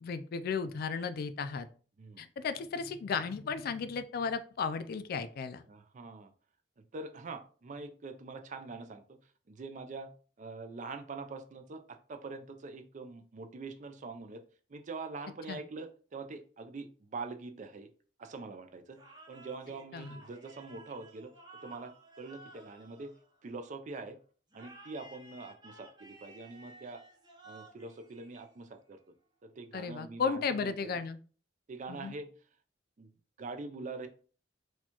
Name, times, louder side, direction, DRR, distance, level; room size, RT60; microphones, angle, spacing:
voice 1, 0.0-1.7 2.2-5.6 15.5-15.6 19.9-20.2 29.7-31.2 31.9-32.1, left 5 dB, 55° left, 12 dB, 0.3 m, -34 dB
voice 2, 5.7-6.3 6.9-9.2 9.5-10.1 10.4-14.4 14.7-17.9 18.2-19.0 19.3-21.3 21.6-23.1 23.4-24.2 24.5-27.0 27.5-29.0 29.4-30.7 31.7-32.3 33.0-33.1 33.4-34.1, right 3 dB, 45° right, 8 dB, 0.4 m, -44 dB
sound 1, 18.9-23.8 24.5-28.9, right 1 dB, 25° right, 0.8 m, -55 dB
4.2 x 2.3 x 2.8 m, 0.40 s
head